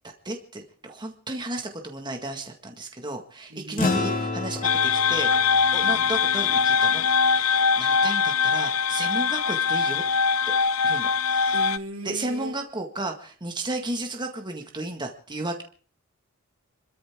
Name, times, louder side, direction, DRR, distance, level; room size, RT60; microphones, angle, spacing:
voice 1, 0.3-5.3 5.7-10.0 10.8-11.5 12.1-15.6, right 2 dB, 20° right, 3 dB, 1.8 m, -33 dB
voice 2, 3.5-4.3 5.8-6.1 9.1-9.3 11.5-12.6, right 1 dB, 70° right, 3 dB, 3.1 m, -37 dB
sound 1, 3.8-8.4, left 3 dB, 40° left, 3.1 m, -32 dB
sound 2, 4.6-11.8, left 6 dB, 80° left, 0.7 m, -22 dB
27.5 x 13.5 x 3.7 m, 0.43 s
head